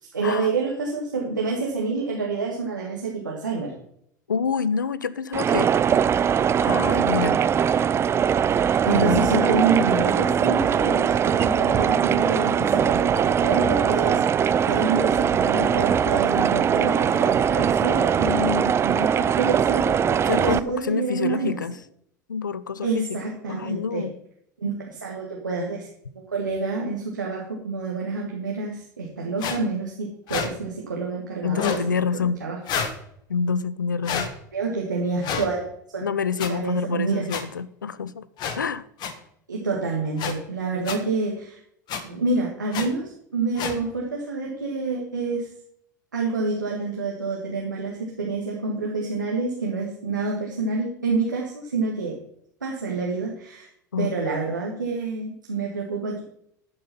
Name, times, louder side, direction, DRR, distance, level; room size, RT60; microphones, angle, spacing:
voice 1, 0.0-3.7 8.9-21.6 22.8-24.0 24.6-25.9 26.3-31.8 32.1-32.6 34.5-35.7 35.9-36.0 36.5-37.3 39.5-41.6 42.0-43.0 43.3-45.5 46.1-52.1 52.6-53.7 54.0-56.2, right 4 dB, 90° right, -2 dB, 1.7 m, -27 dB
voice 2, 4.3-5.7 6.6-7.4 8.9-9.6 20.3-21.7 22.3-23.2 23.5-24.1 31.4-32.4 33.3-34.3 36.0-38.3 38.5-38.9 53.9-54.1, left 6 dB, 85° left, 18 dB, 0.5 m, -27 dB
sound 1, 5.3-20.6, right 8 dB, 25° right, 0.5 m, -21 dB
sound 2, 29.4-29.6 30.3-30.5 31.5-31.8 32.7-33.0 34.0-34.3 35.2-35.5 36.4-36.5 37.3-37.4 38.4-38.6 39.0-39.1 40.2-40.3 40.9-41.0 41.9-42.0 42.7-42.9 43.6-43.8, left 6 dB, 45° left, 1.5 m, -28 dB
12.0 x 5.4 x 5.7 m, 0.71 s
figure-of-eight pair, 80°, 10 cm